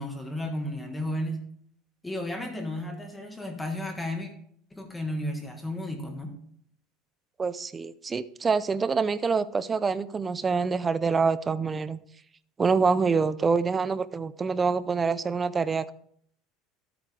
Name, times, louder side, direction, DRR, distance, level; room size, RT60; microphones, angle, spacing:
voice 1, 0.0-1.4 2.0-4.3 4.7-6.4, left 1 dB, 10° left, 4 dB, 1.5 m, -33 dB
voice 2, 7.4-12.0 12.6-15.9, right 5 dB, 20° right, 15 dB, 0.5 m, -26 dB
12.5 x 8.5 x 3.3 m, 0.65 s
cardioid pair, 145°, 0 cm